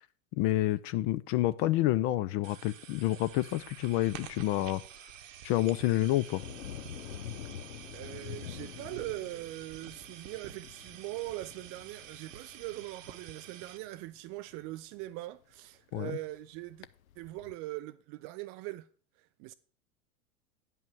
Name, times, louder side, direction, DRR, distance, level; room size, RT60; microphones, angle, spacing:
voice 1, 0.4-4.8 5.4-6.4 15.9-16.2, left 15 dB, 35° left, 0.5 m, -28 dB
sound 1, 2.4-13.8, right 10 dB, 60° right, 1.0 m, -49 dB
sound 2, 6.4-15.1 16.3-16.4 16.6-17.5, left 10 dB, 70° left, 0.7 m, -47 dB
voice 2, 7.9-16.9 17.2-18.9 19.2-19.5, right 18 dB, 30° right, 0.5 m, -41 dB
9.4 x 5.6 x 6.2 m
figure-of-eight pair, 90°, 43 cm